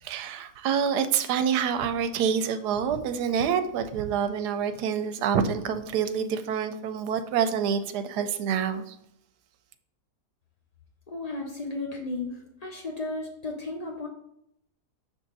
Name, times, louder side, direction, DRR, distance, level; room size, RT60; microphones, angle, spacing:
voice 1, 0.0-9.0, right 7 dB, 85° right, 9 dB, 1.2 m, -27 dB
voice 2, 11.1-14.1, left 2 dB, 65° left, 1 dB, 0.3 m, -34 dB
6.6 x 3.6 x 4.0 m, 0.75 s
omnidirectional pair, 1.7 m